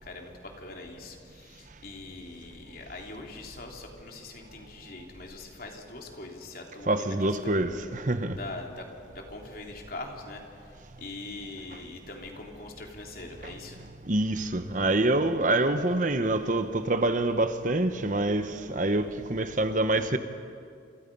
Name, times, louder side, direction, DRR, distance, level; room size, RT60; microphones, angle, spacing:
voice 1, 0.0-7.6 8.3-13.8, left 2 dB, 50° left, 3.5 m, -42 dB
voice 2, 6.9-8.4 14.1-20.2, right 2 dB, 45° right, 1.1 m, -26 dB
30.0 x 28.0 x 5.5 m
head